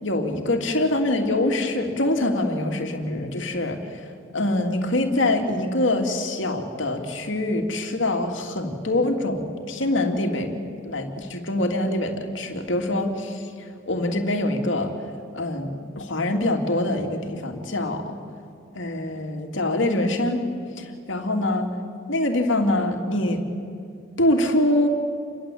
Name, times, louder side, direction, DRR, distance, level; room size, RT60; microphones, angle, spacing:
voice 1, 0.0-4.0 4.3-14.9 15.3-18.2 18.7-20.4 20.8-21.7 22.1-23.4 24.2-24.9, left 1 dB, 65° left, 3 dB, 2.9 m, -24 dB
28.5 x 22.5 x 8.7 m, 2.4 s
head